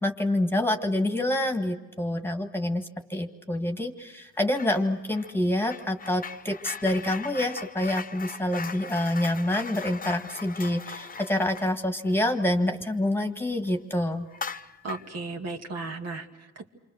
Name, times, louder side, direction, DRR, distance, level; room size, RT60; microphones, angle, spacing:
voice 1, 0.0-14.3, left 1 dB, 5° left, 5 dB, 1.8 m, -27 dB
sound 1, 4.5-4.8 5.1-13.3 13.6-13.8 14.3-15.1, left 5 dB, 30° left, 0.8 m, -39 dB
voice 2, 14.8-16.7, right 3 dB, 55° right, 2 dB, 2.3 m, -35 dB
28.5 x 25.0 x 6.4 m, 1.0 s
cardioid pair, 90°, 30 cm